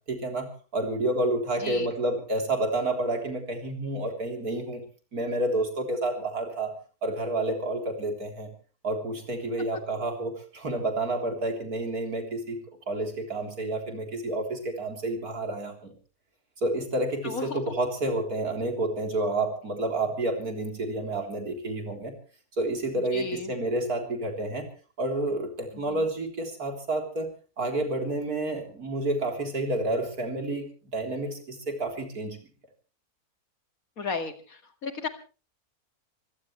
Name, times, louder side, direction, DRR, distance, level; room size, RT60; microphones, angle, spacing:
voice 1, 0.1-4.8 5.1-6.7 7.0-8.5 8.8-12.6 12.9-15.9 16.6-22.1 22.6-24.7 25.0-27.3 27.6-32.4, right 2 dB, 75° right, 4 dB, 4.1 m, -29 dB
voice 2, 17.2-17.6 23.1-23.5 25.9-26.0 34.0-35.1, left 4 dB, 65° left, 8 dB, 2.5 m, -34 dB
24.5 x 17.5 x 3.2 m, 0.37 s
omnidirectional pair, 1.6 m